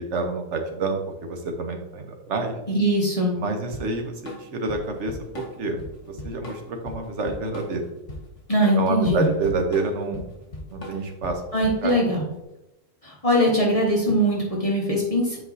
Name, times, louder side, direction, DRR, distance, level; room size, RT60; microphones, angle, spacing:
voice 1, 0.0-2.6 3.3-5.8 6.1-7.8 8.7-10.2 10.7-11.4 11.8-11.9, right 3 dB, 65° right, 4 dB, 1.2 m, -28 dB
voice 2, 2.7-3.3 8.5-9.2 11.5-12.2 13.0-15.4, equal, 30° left, -4 dB, 1.2 m, -21 dB
Drum kit / Drum, 3.7-12.3, left 1 dB, 65° left, 1.6 m, -39 dB
7.9 x 4.7 x 2.7 m, 0.94 s
omnidirectional pair, 1.4 m